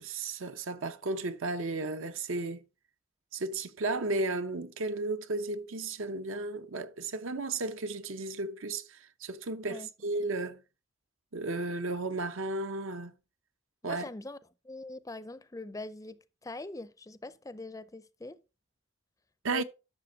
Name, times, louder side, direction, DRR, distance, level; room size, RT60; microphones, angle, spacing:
voice 1, 0.0-2.6 3.3-10.6 11.3-13.1 13.8-14.1 19.4-19.6, right 2 dB, 80° right, 0.9 m, -34 dB
voice 2, 13.8-14.4 14.6-18.4 19.5-19.6, left 2 dB, 15° left, 0.5 m, -43 dB
11.0 x 6.7 x 3.9 m
head